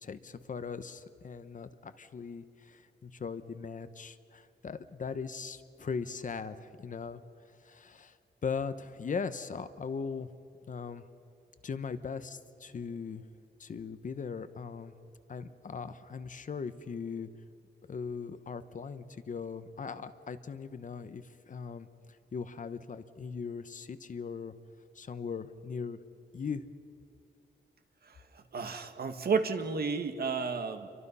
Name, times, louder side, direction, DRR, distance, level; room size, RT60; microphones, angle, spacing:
voice 1, 0.0-7.2 7.6-8.2 8.4-10.3 10.7-11.0 11.6-13.2 13.6-14.9 15.3-17.3 17.9-21.9 22.3-24.5 24.9-26.0 26.3-26.6, left 5 dB, 45° left, 11 dB, 0.9 m, -39 dB
voice 2, 28.0-30.9, right 5 dB, 60° right, 7 dB, 1.7 m, -32 dB
29.5 x 24.0 x 5.6 m, 2.5 s
wide cardioid pair, 180°, 18 cm